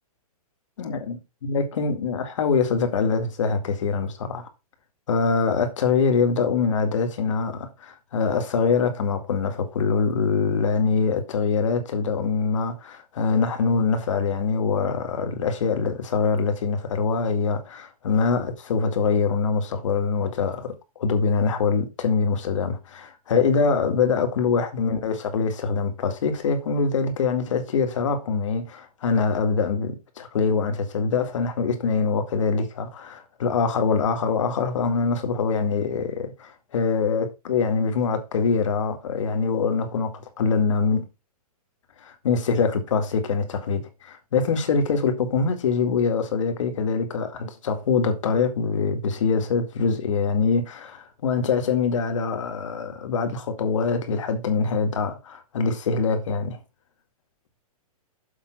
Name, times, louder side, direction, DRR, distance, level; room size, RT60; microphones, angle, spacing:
voice 1, 0.8-4.5 5.1-41.1 42.0-56.6, left 5 dB, 55° left, 2.0 m, -24 dB
7.4 x 5.3 x 5.9 m
hypercardioid pair, 175°, 20 cm